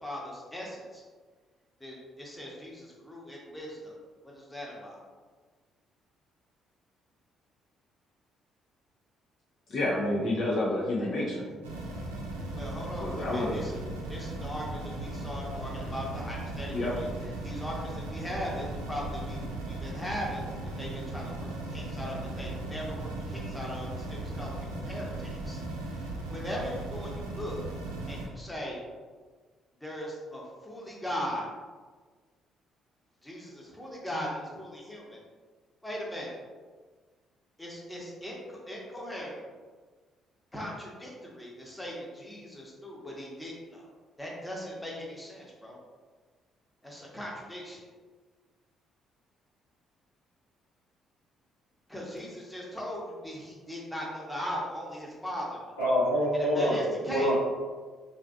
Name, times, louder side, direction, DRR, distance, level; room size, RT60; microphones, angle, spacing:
voice 1, 0.0-1.0 1.8-3.9 4.2-5.0 12.5-13.8 14.1-17.1 17.4-20.4 20.8-25.6 26.0-27.6 28.1-28.8 29.8-31.5 33.2-35.2 35.8-36.3 37.6-39.4 40.5-43.9 44.2-45.8 46.8-47.9 51.9-55.6 56.5-57.3, equal, 10° left, -3 dB, 0.9 m, -39 dB
voice 2, 9.7-11.4 13.0-13.6 16.7-16.9, left 1 dB, 50° left, -4 dB, 0.5 m, -29 dB
sound 1, 11.6-28.3, right 2 dB, 75° right, 0.4 m, -37 dB
voice 3, 55.8-56.8 57.0-57.3, equal, 80° left, -9 dB, 1.0 m, -25 dB
3.1 x 2.6 x 2.4 m, 1.4 s
figure-of-eight pair, 45°, 0 cm